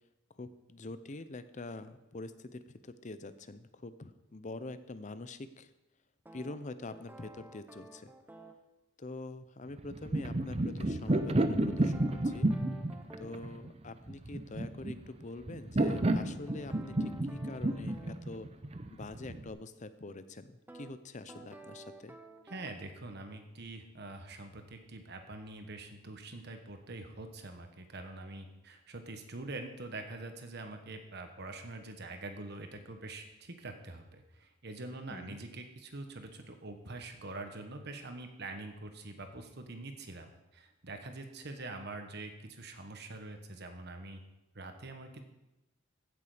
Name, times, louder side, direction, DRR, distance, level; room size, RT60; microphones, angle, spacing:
voice 1, 0.3-5.7 6.3-8.1 9.0-12.5 13.2-18.5 18.9-22.2 35.1-35.4, left 2 dB, 35° left, 12 dB, 0.6 m, -45 dB
sound 1, 6.3-8.6 11.1-13.5 15.9-18.2 20.7-20.9 21.3-22.7, right 2 dB, 10° right, 0.9 m, -52 dB
sound 2, 9.8-19.5, right 1 dB, 30° right, 0.7 m, -31 dB
voice 2, 22.4-44.2 44.5-45.2, right 2 dB, 55° right, 6 dB, 1.4 m, -45 dB
15.5 x 6.9 x 5.1 m, 0.96 s
head